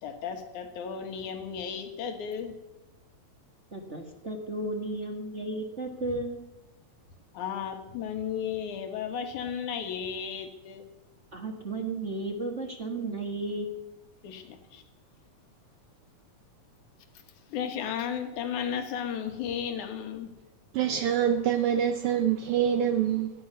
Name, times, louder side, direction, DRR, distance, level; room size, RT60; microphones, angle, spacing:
voice 1, 0.0-2.6 7.3-10.9 14.2-14.8 17.5-20.3, left 8 dB, 85° left, 6 dB, 2.9 m, -34 dB
voice 2, 3.7-6.4 11.3-13.7, right 2 dB, 35° right, 3 dB, 1.3 m, -34 dB
voice 3, 20.7-23.3, right 9 dB, 70° right, 6 dB, 1.4 m, -25 dB
17.5 x 13.0 x 5.5 m, 0.96 s
omnidirectional pair, 3.4 m